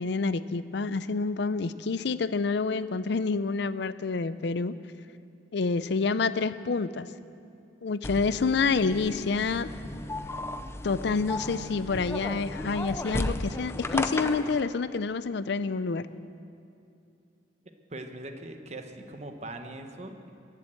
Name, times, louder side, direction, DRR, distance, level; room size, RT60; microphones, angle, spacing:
voice 1, 0.0-4.7 5.5-7.1 7.8-9.7 10.8-16.1, left 4 dB, 65° left, 14 dB, 0.5 m, -28 dB
sound 1, 8.0-14.6, left 1 dB, 15° left, 0.5 m, -34 dB
voice 2, 17.9-20.3, right 2 dB, 40° right, 5 dB, 1.1 m, -41 dB
22.5 x 7.6 x 7.7 m, 2.5 s
head